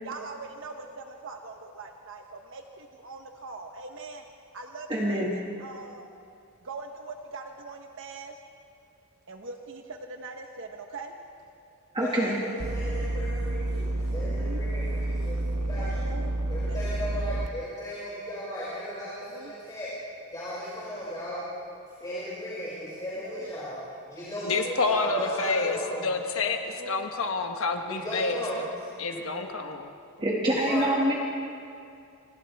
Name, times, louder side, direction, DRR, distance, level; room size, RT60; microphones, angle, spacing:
voice 1, 0.0-4.2 4.5-6.1 6.6-8.3 9.3-11.1 14.2-14.6 15.8-16.3 16.7-17.2 19.0-19.5 22.9-23.5 26.4-27.0 30.2-30.5, right 3 dB, 60° right, 3 dB, 1.1 m, -42 dB
voice 2, 4.9-5.3 11.9-12.4 30.2-31.1, right 1 dB, 25° right, -4 dB, 2.1 m, -25 dB
voice 3, 11.9-16.0 16.5-19.9 20.3-21.4 22.0-23.8 24.1-26.5 26.9-27.2 27.9-28.6 29.1-29.5 30.4-30.9, equal, 20° left, -10 dB, 6.2 m, -36 dB
sound 1, 12.6-17.5, right 1 dB, 75° right, 1.3 m, -29 dB
voice 4, 24.4-28.4 29.0-29.9, left 3 dB, 65° left, 4 dB, 1.2 m, -28 dB
29.5 x 25.0 x 3.6 m, 2.5 s
head